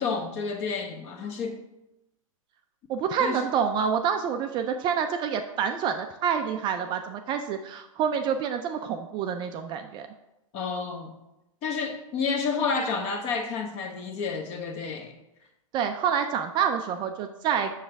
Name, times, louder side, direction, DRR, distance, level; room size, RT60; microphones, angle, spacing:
voice 1, 0.0-1.6 3.2-3.4 10.5-11.1 11.6-15.1, left 5 dB, 35° left, 4 dB, 1.1 m, -30 dB
voice 2, 2.9-10.1 15.7-17.7, right 7 dB, 25° right, 6 dB, 0.4 m, -27 dB
7.0 x 6.3 x 3.4 m, 0.92 s
hypercardioid pair, 115°, 18 cm